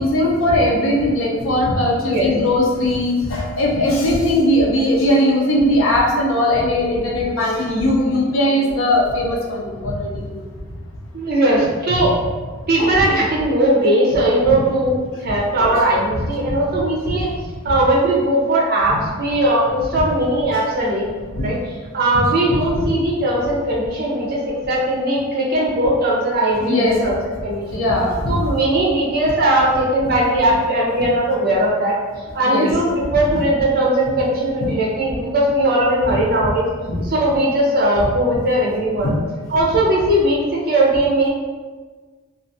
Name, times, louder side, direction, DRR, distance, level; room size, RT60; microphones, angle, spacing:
voice 1, 0.0-10.5 11.9-12.0 12.8-13.2 15.6-15.7 18.9-19.0 21.3-21.5 22.5-22.8 26.6-27.0 27.7-28.4 32.4-32.7 36.9-37.0, left 1 dB, 85° left, -3 dB, 0.5 m, -19 dB
voice 2, 11.1-12.1 12.7-17.3 17.6-21.1 21.4-21.6 21.9-27.8 28.3-32.0 32.3-36.7 37.0-39.1 39.5-41.3, right 1 dB, 50° right, -4 dB, 0.6 m, -19 dB
2.4 x 2.4 x 2.6 m, 1.4 s
head